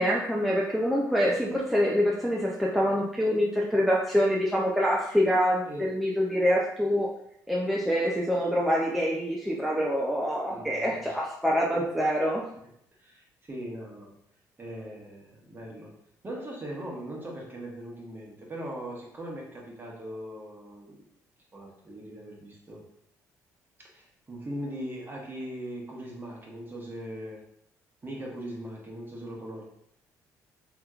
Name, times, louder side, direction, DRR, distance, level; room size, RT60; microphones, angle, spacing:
voice 1, 0.0-7.1 7.5-12.4, equal, ahead, -4 dB, 0.5 m, -25 dB
voice 2, 5.6-6.0 10.5-11.2 11.8-11.9 13.0-14.1 14.6-15.9 16.2-21.0 21.5-22.8 23.9-27.4 28.0-29.6, right 1 dB, 30° right, -2 dB, 1.1 m, -40 dB
3.3 x 2.9 x 2.4 m, 0.73 s
supercardioid pair, 65°, 7 cm